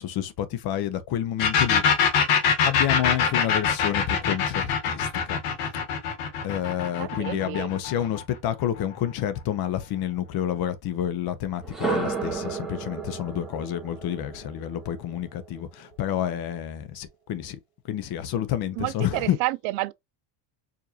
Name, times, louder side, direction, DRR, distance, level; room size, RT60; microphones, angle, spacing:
voice 1, 0.0-1.8 2.6-5.4 6.4-17.6 17.9-19.4, left 11 dB, 50° left, 0.7 m, -29 dB
sound 1, 1.4-8.9, left 6 dB, 85° left, 1.3 m, -24 dB
voice 2, 7.0-7.7 18.8-19.9, right 19 dB, 75° right, 0.6 m, -29 dB
sound 2, 11.6-15.6, right 5 dB, ahead, 1.0 m, -33 dB
4.8 x 2.5 x 2.7 m
cardioid pair, 150°, 49 cm